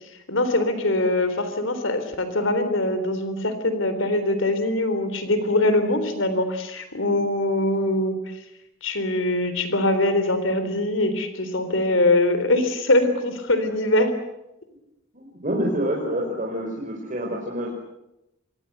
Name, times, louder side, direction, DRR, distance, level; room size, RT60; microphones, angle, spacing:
voice 1, 0.3-8.3 8.8-14.1, left 1 dB, 75° left, 10 dB, 3.7 m, -22 dB
voice 2, 15.1-17.7, right 1 dB, 40° right, -2 dB, 5.2 m, -27 dB
28.0 x 23.5 x 8.0 m, 0.92 s
head